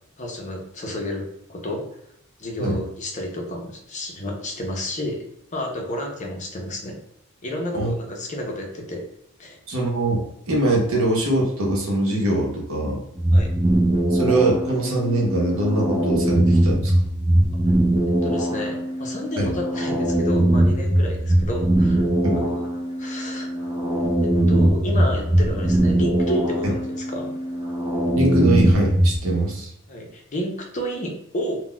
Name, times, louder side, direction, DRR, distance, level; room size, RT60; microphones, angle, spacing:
voice 1, 0.2-1.9 2.4-5.2 5.5-7.0 7.4-9.0 9.4-9.6 13.3-13.5 17.7-17.8 18.0-22.0 22.3-22.6 23.0-23.5 24.2-27.3 29.9-31.6, left 1 dB, 35° left, 0 dB, 0.6 m, -31 dB
voice 2, 9.7-13.0 14.1-16.9 19.4-19.5 22.2-22.4 26.6-26.7 28.1-29.7, right 1 dB, 65° right, -1 dB, 0.8 m, -22 dB
sound 1, 13.2-29.2, right 1 dB, 20° right, 0.5 m, -21 dB
3.9 x 2.1 x 2.2 m, 0.79 s
head